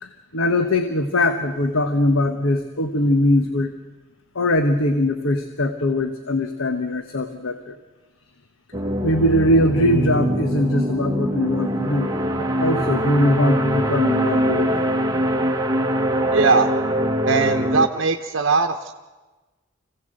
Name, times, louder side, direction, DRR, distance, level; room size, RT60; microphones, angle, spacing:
voice 1, 0.0-3.7 4.3-7.7 9.0-12.1 12.6-14.8, left 1 dB, 90° left, 7 dB, 1.2 m, -21 dB
sound 1, 8.7-17.9, equal, 20° right, 1.3 m, -23 dB
voice 2, 16.3-16.7 17.2-18.9, right 4 dB, 70° right, 4 dB, 1.0 m, -20 dB
25.5 x 16.5 x 7.9 m, 1.2 s
head